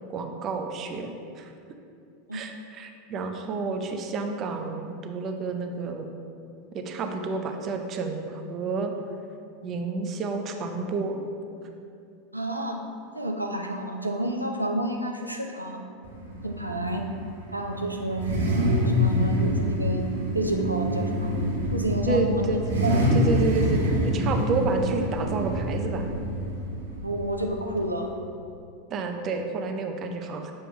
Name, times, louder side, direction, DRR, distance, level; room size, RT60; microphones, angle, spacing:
voice 1, 0.1-1.5 2.3-6.1 6.7-8.9 9.6-11.3 22.1-22.6 23.1-23.9 24.1-26.1 28.9-30.5, right 3 dB, 35° right, 5 dB, 0.6 m, -30 dB
voice 2, 12.3-12.8 13.1-15.8 16.4-17.1 17.5-18.3 18.9-20.1 20.3-21.4 21.7-22.9 27.0-28.1, right 1 dB, 85° right, 2 dB, 0.4 m, -30 dB
Car / Idling / Accelerating revving vroom, 16.0-28.1, equal, 65° right, 0.9 m, -26 dB
7.4 x 6.5 x 2.3 m, 2.5 s
figure-of-eight pair, 85°, 0 cm